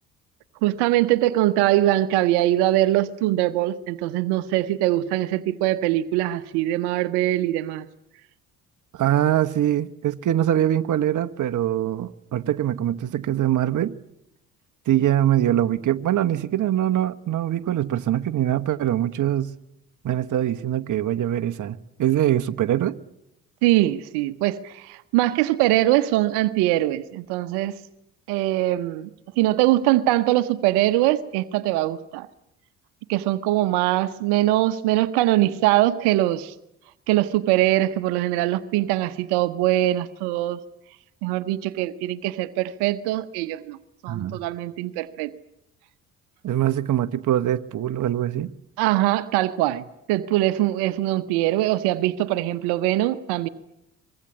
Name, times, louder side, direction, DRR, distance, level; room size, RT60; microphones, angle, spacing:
voice 1, 0.6-7.9 23.6-27.7 28.3-29.1 29.4-32.3 33.1-36.5 37.1-40.6 41.2-43.8 44.0-45.3 48.8-53.5, right 15 dB, 70° right, 1.1 m, -22 dB
voice 2, 8.9-14.0 14.9-19.5 20.0-23.0 44.1-44.4 46.4-48.5, right 11 dB, 45° right, 1.1 m, -23 dB
24.0 x 21.5 x 8.4 m
hypercardioid pair, 50°, 40 cm